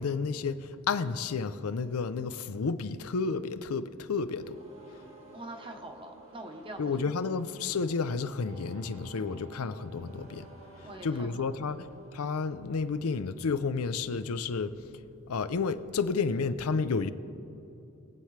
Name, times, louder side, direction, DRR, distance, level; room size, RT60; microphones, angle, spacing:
voice 1, 0.0-4.6 6.8-10.5 11.0-11.9 12.1-14.7 15.3-17.1, left 4 dB, 90° left, 12 dB, 0.5 m, -31 dB
sound 1, 4.2-13.1, right 2 dB, 75° right, 2.0 m, -53 dB
voice 2, 5.3-7.3 10.8-11.3 11.7-11.9, right 2 dB, 25° right, 4 dB, 0.9 m, -44 dB
22.5 x 8.0 x 3.2 m, 2.8 s
head